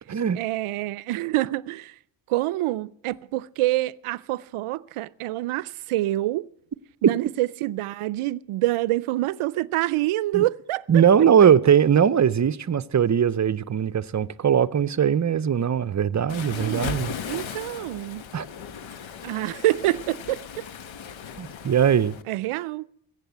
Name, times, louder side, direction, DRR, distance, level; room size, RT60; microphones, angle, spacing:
voice 1, 0.3-1.9 2.3-6.5 7.0-11.0 16.5-16.9 17.3-18.2 19.2-20.4 22.3-22.8, right 17 dB, 90° right, 0.6 m, -26 dB
voice 2, 10.9-17.1 18.3-18.5 21.4-22.2, right 8 dB, 35° right, 0.6 m, -20 dB
Waves surf, 16.3-22.2, left 7 dB, 65° left, 1.1 m, -37 dB
15.5 x 8.3 x 9.3 m
cardioid pair, 65°, 49 cm